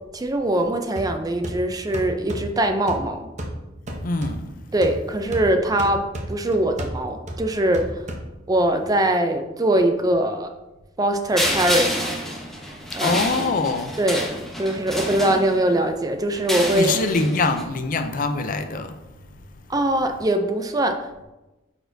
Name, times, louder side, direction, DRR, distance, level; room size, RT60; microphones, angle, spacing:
voice 1, 0.1-3.3 4.7-8.0 8.5-10.5 11.0-12.0 12.9-13.5 14.0-14.3 14.6-17.0 19.7-21.2, right 1 dB, 20° right, 0.4 m, -22 dB
sound 1, 1.0-8.7, right 1 dB, 40° right, 0.8 m, -35 dB
voice 2, 4.0-4.5 13.0-13.9 16.7-19.0, left 3 dB, 45° left, 0.5 m, -24 dB
sound 2, 11.4-15.8 16.3-17.6, equal, ahead, 1.0 m, -28 dB
8.8 x 4.3 x 2.7 m
head